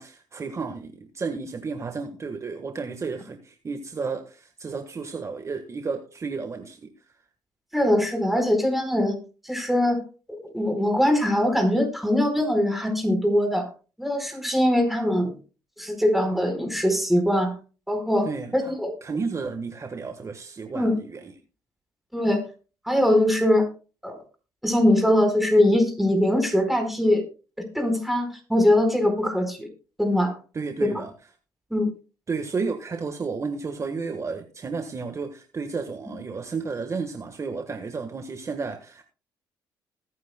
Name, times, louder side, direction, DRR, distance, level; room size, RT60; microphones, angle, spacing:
voice 1, 0.0-6.9 18.2-18.7 19.0-21.3 30.5-31.1 32.3-39.0, right 4 dB, 35° right, 1.4 m, -32 dB
voice 2, 7.7-9.2 9.4-10.0 10.4-13.7 14.0-15.3 15.8-17.5 17.9-18.3 18.5-18.9 20.7-20.9 22.1-22.4 22.9-23.7 24.0-24.2 24.6-27.2 27.7-29.7 30.0-30.4 30.8-31.0 31.7-31.9, left 1 dB, ahead, 4.4 m, -22 dB
20.5 x 9.5 x 2.2 m
supercardioid pair, 70°, 8 cm